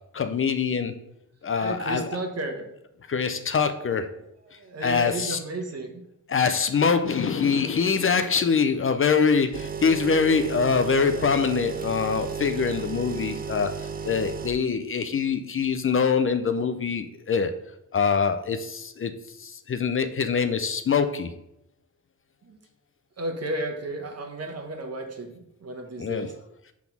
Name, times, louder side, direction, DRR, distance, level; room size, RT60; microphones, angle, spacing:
voice 1, 0.1-0.9 1.4-2.1 3.1-4.1 4.8-5.4 6.3-13.7 14.0-17.5 17.9-19.1 19.4-21.3 26.0-26.3, left 5 dB, 40° left, 9 dB, 0.5 m, -24 dB
voice 2, 1.6-2.7 4.5-6.1 22.4-22.6 23.2-26.3, right 2 dB, 50° right, 4 dB, 1.1 m, -33 dB
sound 1, 9.5-14.5, right 6 dB, 30° right, 0.4 m, -33 dB
6.0 x 3.6 x 5.9 m, 0.80 s
wide cardioid pair, 140°, 31 cm